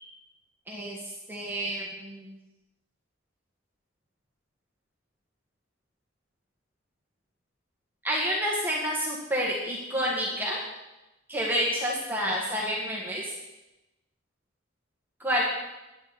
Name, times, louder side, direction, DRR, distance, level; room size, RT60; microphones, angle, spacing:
voice 1, 0.7-1.0 1.3-2.3 8.0-10.6 11.3-13.3 15.2-15.4, equal, 10° right, -3 dB, 1.7 m, -29 dB
15.0 x 10.5 x 4.2 m, 1.0 s
head